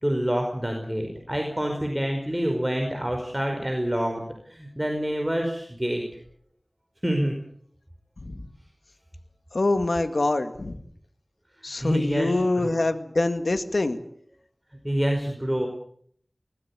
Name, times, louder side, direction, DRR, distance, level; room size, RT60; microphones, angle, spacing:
voice 1, 0.0-6.0 7.0-7.4 11.8-12.8 14.8-15.7, equal, 10° right, 3 dB, 5.1 m, -27 dB
voice 2, 9.5-10.8 11.6-14.0, left 2 dB, 85° left, 9 dB, 1.9 m, -25 dB
21.5 x 20.0 x 8.6 m, 0.64 s
wide cardioid pair, 40°, 0 cm